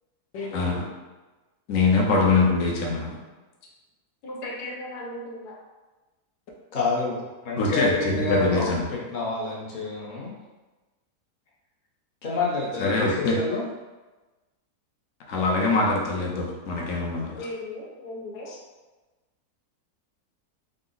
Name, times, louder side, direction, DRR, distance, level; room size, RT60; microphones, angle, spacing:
voice 1, 0.3-0.8 1.7-3.1 7.6-8.8 12.8-13.4 15.3-17.4 18.5-18.6, left 3 dB, 60° left, -2 dB, 1.0 m, -23 dB
voice 2, 4.2-5.5 17.3-18.5, left 1 dB, 85° left, -2 dB, 1.4 m, -36 dB
voice 3, 6.7-10.4 12.2-13.7, left 3 dB, 40° left, -5 dB, 0.8 m, -28 dB
3.9 x 2.1 x 3.8 m, 1.2 s
omnidirectional pair, 1.7 m